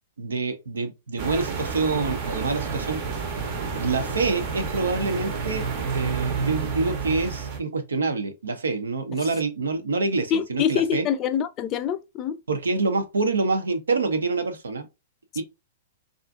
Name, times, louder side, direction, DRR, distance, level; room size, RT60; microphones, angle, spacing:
voice 1, 0.2-3.0 3.8-5.7 5.9-11.1 12.5-14.9 15.4-15.5, right 3 dB, 90° right, 0.6 m, -26 dB
sound 1, 1.2-7.6, right 5 dB, 50° right, 0.7 m, -30 dB
voice 2, 10.3-12.4, left 8 dB, 35° left, 0.3 m, -25 dB
2.5 x 2.4 x 2.4 m
hypercardioid pair, 120°, 0 cm